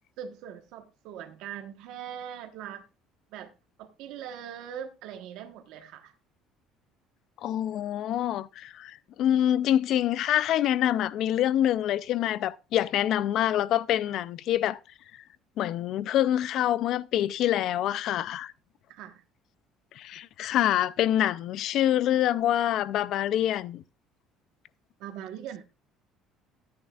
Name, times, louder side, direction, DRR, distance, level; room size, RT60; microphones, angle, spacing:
voice 1, 0.2-2.8 3.3-3.5 3.8-6.1 13.9-14.0 18.9-19.2 25.0-25.6, right 9 dB, 65° right, 1.1 m, -41 dB
voice 2, 7.4-14.8 15.6-18.5 20.0-23.8, left 11 dB, 45° left, 0.4 m, -26 dB
13.0 x 9.5 x 2.4 m
cardioid pair, 180°, 0 cm